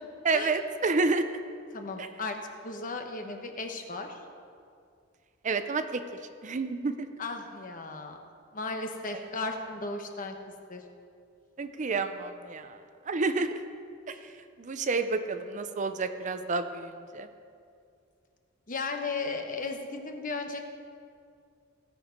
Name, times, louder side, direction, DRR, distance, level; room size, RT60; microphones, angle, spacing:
voice 1, 0.2-1.4 2.0-2.1 5.4-6.0 6.4-7.1 11.6-12.8 13.1-13.6 14.1-17.3, right 3 dB, 40° right, 9 dB, 0.5 m, -30 dB
voice 2, 1.7-2.4 2.6-4.2 7.2-8.2 8.5-10.4 10.7-10.8 14.1-14.2 18.7-20.6, left 3 dB, 45° left, 4 dB, 1.0 m, -35 dB
16.5 x 7.0 x 5.2 m, 2.4 s
head